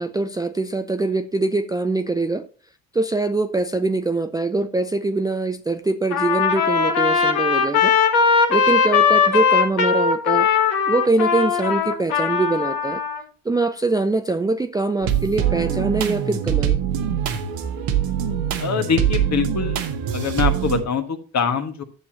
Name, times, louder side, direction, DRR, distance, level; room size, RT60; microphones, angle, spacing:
voice 1, 0.0-2.5 2.9-7.9 8.5-10.5 10.9-13.0 13.4-16.8, right 3 dB, 10° right, 0.5 m, -23 dB
Trumpet, 6.1-13.2, left 6 dB, 60° left, 1.5 m, -19 dB
sound 1, 15.0-20.8, right 9 dB, 60° right, 1.2 m, -23 dB
voice 2, 18.6-19.8 20.1-21.8, left 6 dB, 45° left, 1.4 m, -23 dB
11.0 x 7.1 x 2.8 m
hypercardioid pair, 50°, 39 cm